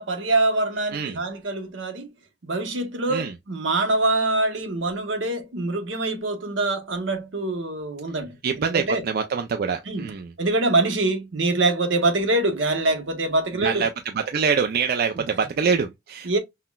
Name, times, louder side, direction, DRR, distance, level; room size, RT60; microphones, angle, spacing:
voice 1, 0.0-2.1 2.4-9.0 9.9-10.1 10.4-13.9 16.2-16.4, right 2 dB, 75° right, 0.9 m, -24 dB
voice 2, 8.4-10.3 13.5-16.4, right 6 dB, 55° right, 0.4 m, -25 dB
5.7 x 2.1 x 2.2 m
head